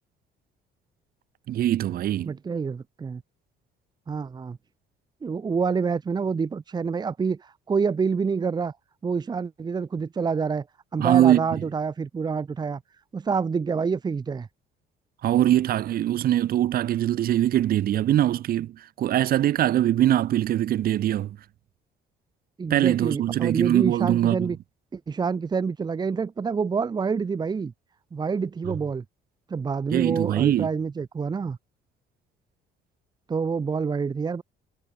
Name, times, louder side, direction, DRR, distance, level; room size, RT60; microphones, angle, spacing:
voice 1, 1.5-2.3 11.0-11.4 15.2-21.4 22.7-24.5 29.9-30.7, right 12 dB, 60° right, 1.7 m, -22 dB
voice 2, 2.2-3.2 4.1-4.6 5.2-8.8 9.0-10.7 10.9-12.8 13.1-14.5 22.6-24.6 24.9-27.7 28.1-29.0 29.5-31.6 33.3-34.4, right 5 dB, 25° right, 0.9 m, -27 dB
cardioid pair, 110°, 17 cm